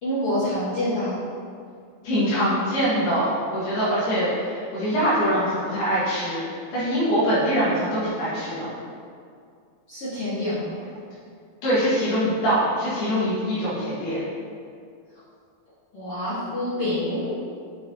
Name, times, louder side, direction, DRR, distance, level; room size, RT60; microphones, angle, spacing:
voice 1, 0.0-1.2 9.9-10.7 15.9-17.3, left 1 dB, 55° left, -13 dB, 1.7 m, -27 dB
voice 2, 2.0-8.7 11.6-14.2, equal, 85° left, -11 dB, 3.6 m, -23 dB
7.0 x 5.5 x 2.7 m, 2.2 s
omnidirectional pair, 4.4 m